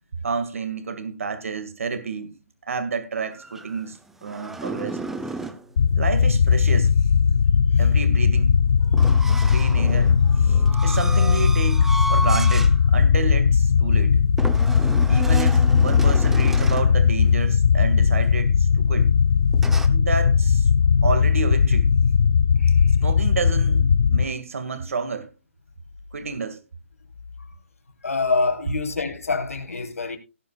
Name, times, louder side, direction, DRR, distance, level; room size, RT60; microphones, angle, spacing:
voice 1, 0.2-2.3 2.7-5.0 5.9-6.9 7.8-8.5 9.5-14.2 15.1-19.1 19.9-20.7 21.0-21.9 23.0-25.3 26.1-26.6, right 5 dB, 70° right, 2.1 m, -30 dB
sound 1, 3.3-5.6 8.9-12.8 13.2-13.4 14.4-17.0 19.5-19.9, right 2 dB, 5° right, 0.8 m, -32 dB
sound 2, 5.8-24.2, left 6 dB, 65° left, 0.7 m, -18 dB
voice 2, 28.0-30.2, left 3 dB, 90° left, 3.8 m, -26 dB
17.5 x 9.9 x 2.4 m
hypercardioid pair, 155°, 8 cm